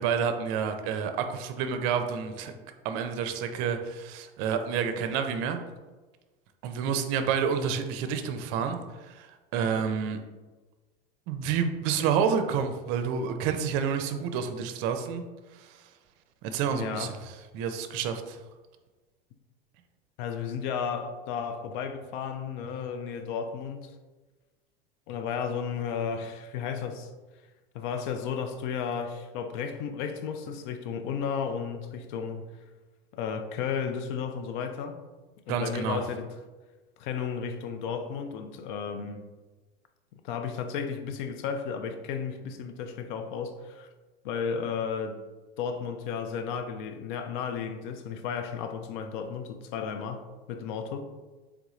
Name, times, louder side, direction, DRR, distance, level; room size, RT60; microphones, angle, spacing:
voice 1, 0.0-2.5 2.8-5.6 6.6-9.3 9.5-10.2 11.3-15.2 15.6-15.8 16.4-17.1 17.5-18.4 35.5-36.0, right 7 dB, 50° right, 0.5 m, -29 dB
voice 2, 16.7-17.1 20.2-23.9 25.1-27.1 27.7-32.5 33.1-35.0 35.5-36.3 37.0-39.3 40.1-43.9 44.2-45.2 45.6-51.0, left 6 dB, 55° left, 0.6 m, -33 dB
3.6 x 3.4 x 3.0 m
hypercardioid pair, 85°, 29 cm